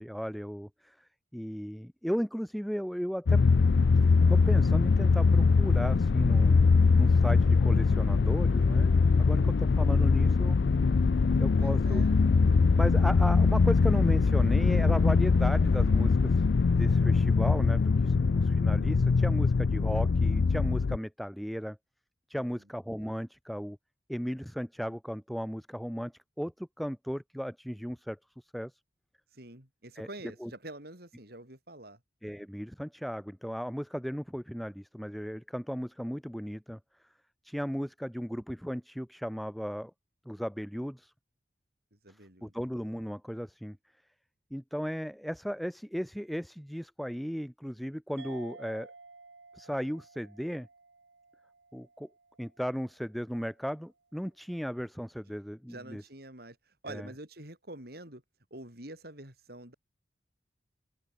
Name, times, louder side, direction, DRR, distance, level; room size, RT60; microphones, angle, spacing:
voice 1, 0.0-3.4 4.3-10.6 11.4-12.0 12.8-16.5 16.7-21.8 22.3-23.8 24.1-28.8 30.0-30.1 30.4-30.5 32.2-36.8 37.4-39.9 40.3-41.1 42.4-43.8 44.5-48.9 49.5-50.7 51.7-52.1 52.4-56.0 56.9-57.1, equal, ahead, 0.7 m, -36 dB
sound 1, 3.3-21.0, left 4 dB, 70° left, 0.4 m, -23 dB
voice 2, 9.2-9.7 11.6-12.2 22.3-22.5 29.3-32.0 42.0-42.5 55.7-58.2 58.5-59.7, right 1 dB, 55° right, 6.8 m, -47 dB
sound 2, 48.2-53.1, right 3 dB, 85° right, 3.3 m, -53 dB
open air
head